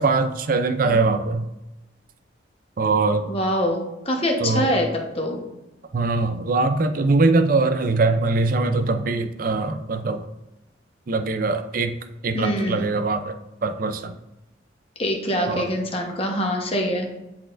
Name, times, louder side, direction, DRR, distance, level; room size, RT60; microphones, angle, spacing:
voice 1, 0.0-1.5 2.8-3.3 4.4-4.7 5.9-10.2 11.1-11.9 12.2-14.1 15.5-15.7, right 3 dB, 45° right, 9 dB, 0.4 m, -22 dB
voice 2, 3.3-5.4 12.3-12.9 15.0-17.1, equal, 30° left, 1 dB, 1.1 m, -24 dB
10.0 x 4.3 x 2.5 m, 0.99 s
head